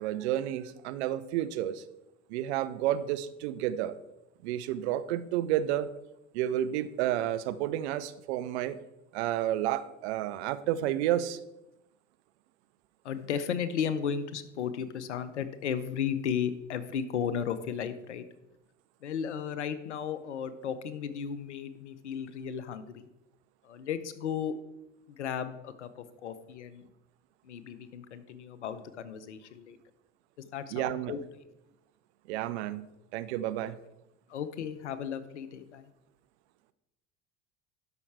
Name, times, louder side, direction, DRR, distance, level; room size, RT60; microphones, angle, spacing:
voice 1, 0.0-1.8 2.3-4.0 4.4-5.9 6.3-8.8 9.1-11.4 30.7-31.1 32.3-32.8 33.1-33.8, right 12 dB, 70° right, 14 dB, 0.7 m, -31 dB
voice 2, 13.0-18.3 19.0-23.1 23.6-24.7 25.1-26.9 27.4-29.8 30.5-31.2 34.3-35.9, left 7 dB, 85° left, 13 dB, 0.8 m, -35 dB
12.0 x 5.7 x 4.7 m, 0.89 s
hypercardioid pair, 70°, 34 cm